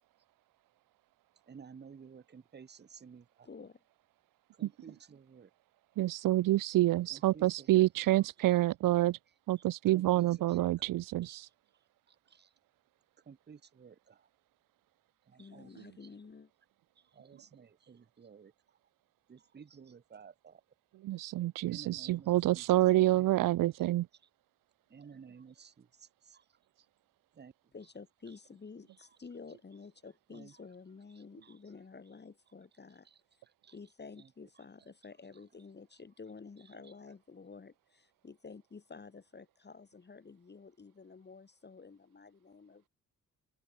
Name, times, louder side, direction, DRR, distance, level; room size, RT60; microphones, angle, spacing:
voice 1, 1.5-3.5 4.5-5.5 7.1-7.9 8.1-8.3 9.9-10.7 11.3-11.5 12.1-12.5 13.3-14.3 15.3-16.1 17.0-18.5 19.3-20.6 21.1-21.3 21.6-23.3 23.8-23.9 24.9-26.4 27.3-27.5 30.3-30.5 31.4-31.6 33.6-33.7 34.2-34.3, right 6 dB, 30° right, 1.0 m, -54 dB
voice 2, 3.4-3.8 15.3-16.5 27.7-33.1 33.3-33.4 33.7-42.9, left 4 dB, 30° left, 2.2 m, -51 dB
voice 3, 6.0-9.2 9.5-11.5 21.0-24.1, right 15 dB, 80° right, 0.5 m, -28 dB
cardioid pair, 105°, 32 cm